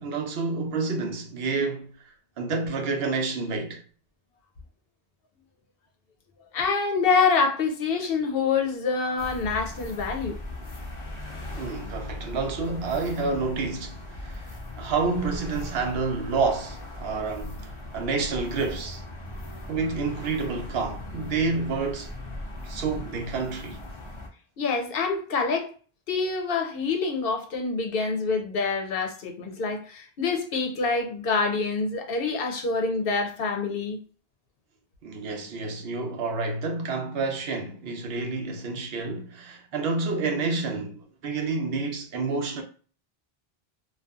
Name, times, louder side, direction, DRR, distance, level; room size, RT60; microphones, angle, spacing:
voice 1, 0.0-1.9 2.4-3.8 11.5-19.0 19.7-22.1 22.6-23.8 35.0-42.6, right 4 dB, 80° right, 0.9 m, -29 dB
voice 2, 6.5-10.4 24.6-25.7 26.1-34.0, left 4 dB, 70° left, 0.8 m, -26 dB
sound 1, 9.2-24.3, left 1 dB, 35° left, 0.5 m, -38 dB
2.6 x 2.3 x 2.3 m
omnidirectional pair, 1.0 m